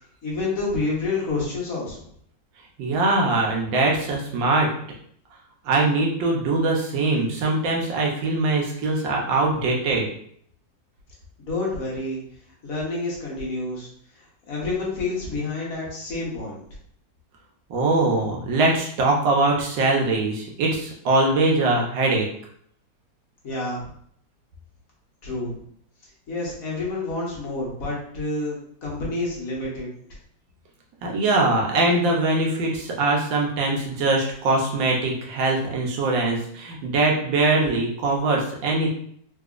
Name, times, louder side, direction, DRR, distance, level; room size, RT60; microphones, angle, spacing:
voice 1, 0.2-2.0 11.4-12.2 12.6-13.9 14.2-16.6 23.4-23.9 25.2-25.6 26.3-30.2, left 2 dB, 55° left, -5 dB, 1.4 m, -29 dB
voice 2, 2.8-4.7 5.6-10.1 17.7-22.2 31.0-38.9, right 2 dB, 85° right, -1 dB, 1.5 m, -22 dB
3.9 x 2.7 x 2.4 m, 0.64 s
omnidirectional pair, 2.0 m